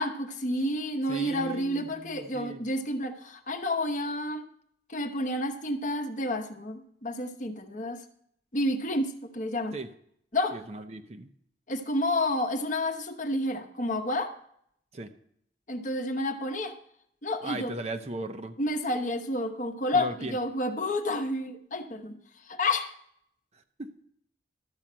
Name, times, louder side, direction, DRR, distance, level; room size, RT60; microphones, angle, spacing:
voice 1, 0.0-4.5 4.9-8.0 8.5-9.7 10.3-10.5 11.7-14.3 15.7-16.7 17.2-17.7 18.6-22.2 22.4-22.9, left 1 dB, 40° left, 6 dB, 1.0 m, -30 dB
voice 2, 1.1-2.6 9.7-9.9 10.5-11.3 14.9-15.1 17.4-18.6 19.9-20.4 23.8-23.9, right 2 dB, 35° right, 8 dB, 0.7 m, -37 dB
12.5 x 5.6 x 7.4 m, 0.68 s
head